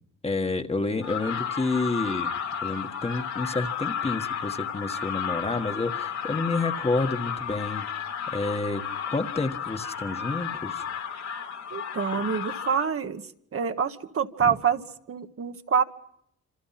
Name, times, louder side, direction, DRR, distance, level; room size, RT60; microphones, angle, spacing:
voice 1, 0.2-2.3 2.6-7.9 8.3-10.8 14.4-14.5, left 3 dB, 20° left, 7 dB, 1.5 m, -29 dB
sound 1, 1.0-12.9, left 7 dB, 65° left, 3.4 m, -33 dB
voice 2, 11.7-13.2 13.5-14.8 15.1-15.8, right 6 dB, 50° right, 8 dB, 1.4 m, -26 dB
29.0 x 26.5 x 5.9 m, 0.75 s
wide cardioid pair, 165°, 30 cm